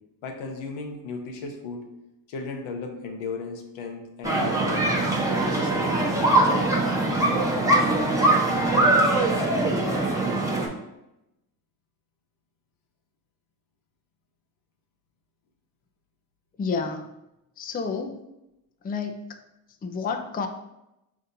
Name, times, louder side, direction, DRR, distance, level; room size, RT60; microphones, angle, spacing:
voice 1, 0.2-1.9 2.3-5.1 5.4-7.1, left 4 dB, 75° left, 4 dB, 0.9 m, -36 dB
sound 1, 4.2-10.7, right 2 dB, 5° right, 1.0 m, -22 dB
voice 2, 16.6-17.1 17.6-18.2 18.8-19.4 19.8-20.5, left 5 dB, 20° left, 6 dB, 0.4 m, -30 dB
5.2 x 2.7 x 2.6 m, 0.89 s
supercardioid pair, 60°, 48 cm